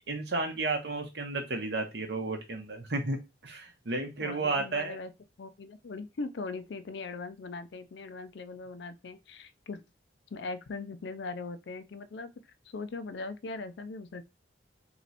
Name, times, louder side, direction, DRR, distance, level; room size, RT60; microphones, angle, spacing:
voice 1, 0.1-3.2 3.4-5.0, right 3 dB, 60° right, 0.9 m, -32 dB
voice 2, 4.2-5.1 5.4-9.8 10.3-12.3 12.6-14.3, left 3 dB, 65° left, 0.4 m, -40 dB
3.0 x 2.9 x 4.0 m
head